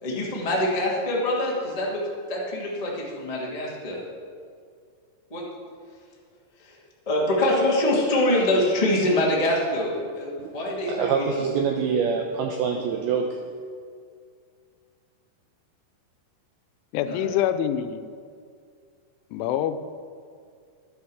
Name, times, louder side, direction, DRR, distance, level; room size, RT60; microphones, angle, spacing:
voice 1, 0.0-2.0 2.3-4.0 5.3-5.4 6.6-6.8 7.0-11.1 17.0-17.3, left 1 dB, 55° left, -4 dB, 0.4 m, -24 dB
voice 2, 10.8-13.4, right 6 dB, 85° right, 3 dB, 2.2 m, -25 dB
voice 3, 16.9-18.1 19.3-19.8, left 10 dB, 85° left, 10 dB, 3.1 m, -25 dB
12.5 x 10.5 x 6.4 m, 2.2 s
omnidirectional pair, 5.4 m